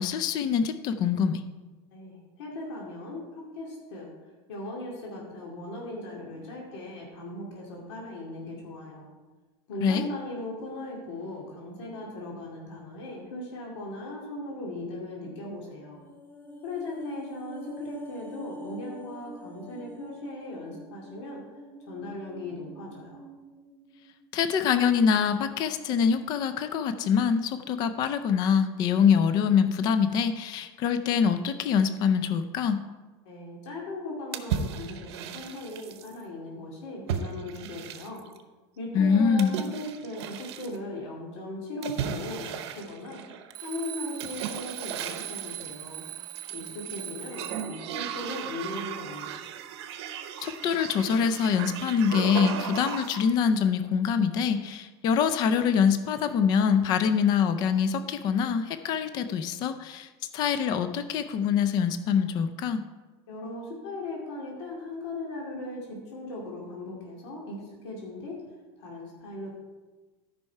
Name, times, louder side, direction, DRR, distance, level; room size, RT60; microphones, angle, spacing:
voice 1, 0.0-1.4 9.8-10.0 24.3-32.8 38.9-39.6 50.4-62.8, left 7 dB, 30° left, 11 dB, 0.4 m, -24 dB
voice 2, 1.9-4.1 4.5-9.1 9.7-16.0 16.6-21.4 21.8-23.2 33.2-38.2 38.8-43.2 43.6-46.1 46.5-49.4 63.3-68.4 68.8-69.5, left 2 dB, 80° left, -2 dB, 2.4 m, -38 dB
sound 1, 15.9-24.4 24.7-24.8, equal, 10° left, 1.0 m, -45 dB
sound 2, 34.3-36.1 37.1-38.4 39.4-40.8 41.8-43.5 44.2-45.7 46.4-47.0 47.3-53.3, right 8 dB, 75° right, 0.8 m, -36 dB
Alarm, 43.5-47.9, right 12 dB, 30° right, 0.5 m, -40 dB
13.0 x 5.5 x 4.6 m, 1.3 s
supercardioid pair, 175°, 14 cm